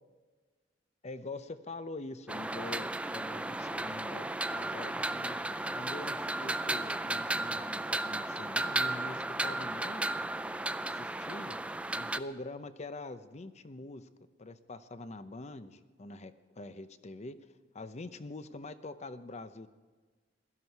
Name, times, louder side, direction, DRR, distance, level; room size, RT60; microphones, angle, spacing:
voice 1, 1.0-5.4 5.7-10.2 10.9-11.5 11.9-14.1 14.4-17.4 17.7-19.7, left 2 dB, 40° left, 12 dB, 0.7 m, -44 dB
sound 1, 2.3-12.2, right 2 dB, 5° right, 0.3 m, -34 dB
17.0 x 13.0 x 4.7 m, 1.4 s
head